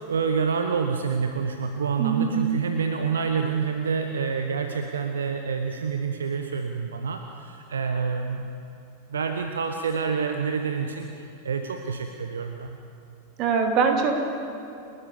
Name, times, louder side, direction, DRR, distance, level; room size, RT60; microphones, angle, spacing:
voice 1, 0.0-8.5 9.1-12.8, right 5 dB, 70° right, 5 dB, 1.1 m, -27 dB
voice 2, 2.0-2.4 13.4-14.2, right 5 dB, 40° right, 3 dB, 2.8 m, -22 dB
30.0 x 12.5 x 7.0 m, 2.7 s
figure-of-eight pair, 90°, 0 cm